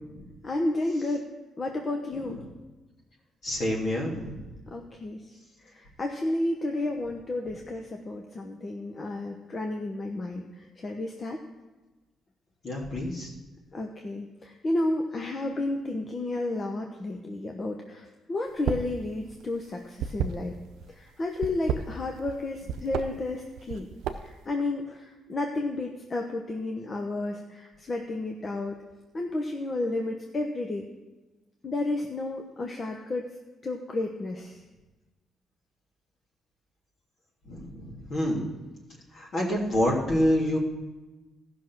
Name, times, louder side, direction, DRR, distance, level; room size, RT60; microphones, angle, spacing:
voice 1, 0.4-1.3 1.6-2.4 4.7-11.4 13.7-20.5 20.9-23.9 24.1-28.8 29.1-30.9 31.6-33.3 33.6-34.6, left 2 dB, 35° left, 2 dB, 1.0 m, -32 dB
voice 2, 3.4-4.4 12.6-13.3 37.4-38.5 39.1-40.6, equal, 55° left, -2 dB, 3.0 m, -27 dB
sound 1, 18.5-19.0 19.2-20.8 21.3-22.4 22.7-23.1 23.6-24.4, right 8 dB, 85° right, 0.6 m, -31 dB
14.5 x 6.1 x 6.0 m, 1.1 s
cardioid pair, 90°, 0 cm